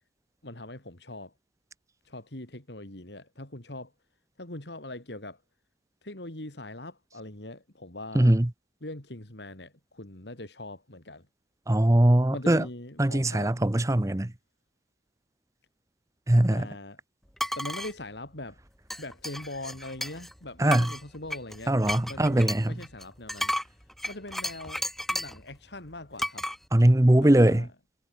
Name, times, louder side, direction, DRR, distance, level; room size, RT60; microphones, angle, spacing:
voice 1, 0.4-1.3 2.0-3.9 4.4-5.4 6.0-8.3 8.8-11.3 12.3-13.6 16.5-17.0 17.5-18.6 19.0-21.8 22.1-26.5 27.2-27.7, left 2 dB, 70° left, 3.2 m, -41 dB
voice 2, 8.1-8.5 11.7-12.6 13.0-14.3 16.3-16.7 20.6-20.9 21.7-22.7 26.7-27.6, right 1 dB, 15° right, 0.7 m, -21 dB
sound 1, 17.4-17.9 18.9-20.3 20.7-25.4 26.2-26.6, equal, ahead, 1.9 m, -33 dB
head